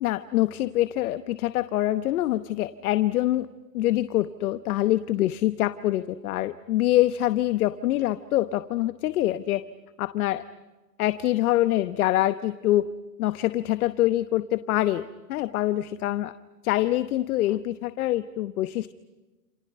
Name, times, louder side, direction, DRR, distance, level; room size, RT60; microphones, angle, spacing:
voice 1, 0.0-3.5 3.7-9.6 10.0-10.4 11.0-12.9 13.2-16.3 16.6-18.9, left 14 dB, 60° left, 12 dB, 1.1 m, -25 dB
29.5 x 29.0 x 5.5 m, 1.2 s
hypercardioid pair, 130°, 49 cm